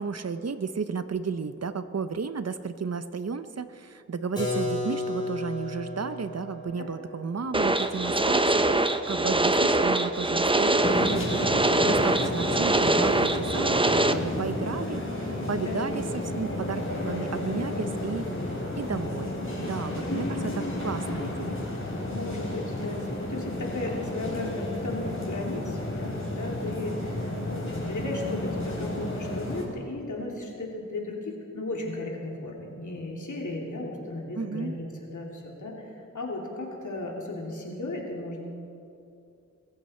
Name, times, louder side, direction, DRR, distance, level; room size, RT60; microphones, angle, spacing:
voice 1, 0.0-18.3 18.8-21.7 34.4-34.8, right 5 dB, 60° right, 11 dB, 0.7 m, -33 dB
Keyboard (musical), 4.4-10.0, left 2 dB, 15° left, 4.1 m, -35 dB
sound 1, 7.5-14.1, right 2 dB, 15° right, 0.7 m, -23 dB
sound 2, 10.8-29.6, left 1 dB, 45° left, 3.9 m, -32 dB
voice 2, 22.1-38.4, left 2 dB, 80° left, -1 dB, 3.0 m, -35 dB
22.0 x 14.0 x 4.4 m, 2.6 s
wide cardioid pair, 80°, 30 cm